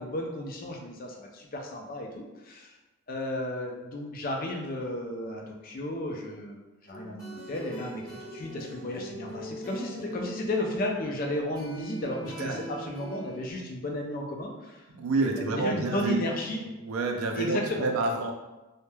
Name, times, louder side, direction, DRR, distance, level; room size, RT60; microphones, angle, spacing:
voice 1, 0.0-2.7 3.1-8.1 8.3-14.9 15.2-16.6 17.4-17.9, left 1 dB, 40° left, 1 dB, 0.4 m, -33 dB
sound 1, 6.9-13.5, equal, 15° left, 0.9 m, -41 dB
voice 2, 14.9-16.2 16.8-18.3, right 3 dB, 80° right, 3 dB, 0.4 m, -28 dB
3.0 x 2.1 x 2.2 m, 1.1 s
head